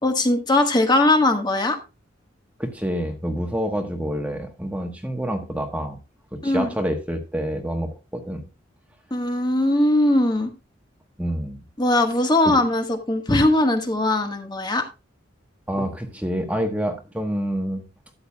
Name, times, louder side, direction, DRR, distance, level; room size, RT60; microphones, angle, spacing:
voice 1, 0.0-1.8 6.4-6.7 9.1-10.5 11.8-14.9, left 1 dB, 20° left, 5 dB, 1.6 m, -20 dB
voice 2, 2.6-6.0 6.3-8.4 11.2-11.6 12.4-12.5 15.7-17.8, equal, 5° right, 4 dB, 1.2 m, -27 dB
13.0 x 8.9 x 2.3 m, 0.27 s
head